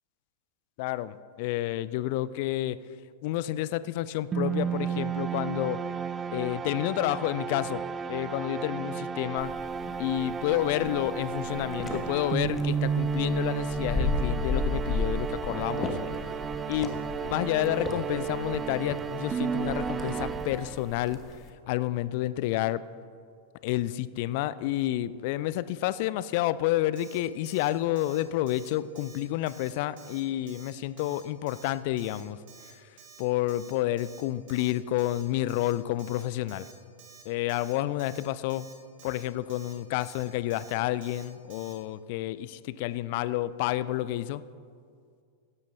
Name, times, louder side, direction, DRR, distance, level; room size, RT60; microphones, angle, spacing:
voice 1, 0.8-2.8 3.2-5.8 6.3-7.8 8.1-9.5 10.0-16.0 16.7-16.9 17.2-21.4 21.7-22.8 23.6-32.4 32.7-32.9 33.2-36.7 37.2-38.7 39.0-44.4, left 14 dB, 50° left, 17 dB, 0.4 m, -30 dB
sound 1, 4.3-21.1, right 6 dB, 20° right, 0.4 m, -33 dB
sound 2, 9.4-21.5, left 3 dB, 20° left, 1.3 m, -35 dB
Alarm, 27.0-27.2 27.5-27.7 28.0-28.2 28.5-28.7 29.0-29.2 29.5-29.7 30.0-30.2 30.5-30.7 31.0-31.2 31.5-31.7 32.0-32.2 32.5-32.7 33.0-33.2 33.5-33.7 34.0-34.2 34.5-34.7 35.0-35.2 35.5-35.7 36.0-36.2 36.5-36.7 37.0-37.2 37.5-37.7 38.0-38.2 38.5-38.7 39.0-39.2 39.5-39.7 40.0-40.2 40.5-40.7 41.0-41.2 41.5-41.7, right 6 dB, 45° right, 1.6 m, -51 dB
16.5 x 13.0 x 2.7 m, 2.2 s
figure-of-eight pair, 90°, 0 cm